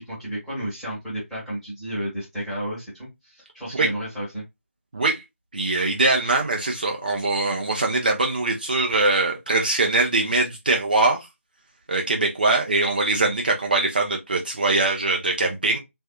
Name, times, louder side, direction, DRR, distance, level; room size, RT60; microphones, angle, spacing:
voice 1, 0.1-4.4, right 1 dB, ahead, 1.0 m, -32 dB
voice 2, 5.5-11.2 11.9-15.8, right 2 dB, 40° right, 0.5 m, -22 dB
3.4 x 2.6 x 2.2 m
figure-of-eight pair, 160°, 8 cm